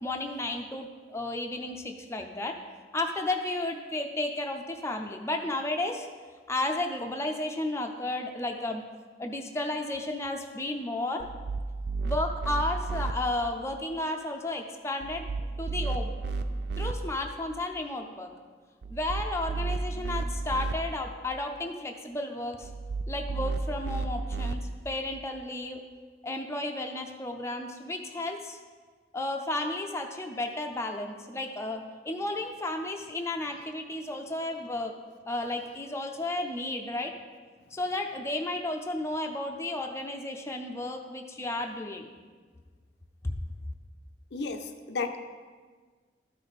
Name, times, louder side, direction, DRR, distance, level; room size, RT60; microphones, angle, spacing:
voice 1, 0.0-2.6 2.9-6.1 6.5-8.8 9.2-11.2 12.0-15.2 15.6-16.1 16.8-18.3 18.9-22.7 23.1-25.8 26.2-28.6 29.1-34.9 35.3-37.1 37.7-42.1, left 2 dB, 15° left, 3 dB, 0.5 m, -33 dB
sound 1, 11.2-13.1 15.0-16.9 18.8-20.7 22.6-24.5, right 3 dB, 65° right, 0.4 m, -32 dB
voice 2, 44.3-45.2, left 4 dB, 65° left, 7 dB, 0.6 m, -33 dB
13.0 x 5.1 x 4.1 m, 1.5 s
head